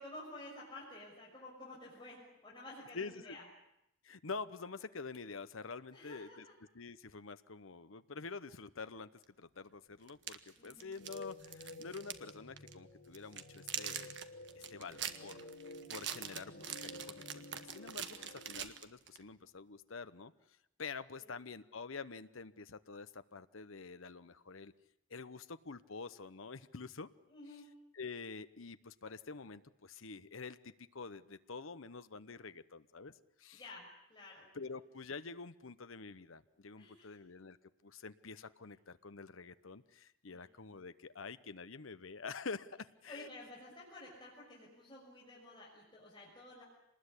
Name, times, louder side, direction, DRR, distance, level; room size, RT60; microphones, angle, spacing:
voice 1, 0.0-3.4 5.9-6.4 10.6-11.0 18.1-18.4 21.2-21.3 27.3-27.7 33.5-34.5 36.8-37.1 40.3-40.5 43.1-46.6, left 2 dB, 20° left, -4 dB, 6.0 m, -52 dB
voice 2, 2.9-3.4 4.0-6.4 6.7-9.1 9.4-14.1 14.5-15.4 15.9-20.3 20.8-24.7 25.1-27.1 27.9-33.1 33.4-33.6 34.5-37.6 37.8-43.3, left 4 dB, 80° left, 12 dB, 0.9 m, -47 dB
sound 1, 9.2-9.3 10.1-12.3 12.6-12.7 13.1-19.2, right 9 dB, 60° right, 1.6 m, -44 dB
sound 2, 11.0-18.7, left 1 dB, 60° left, 3.5 m, -52 dB
26.5 x 20.0 x 9.9 m, 0.83 s
head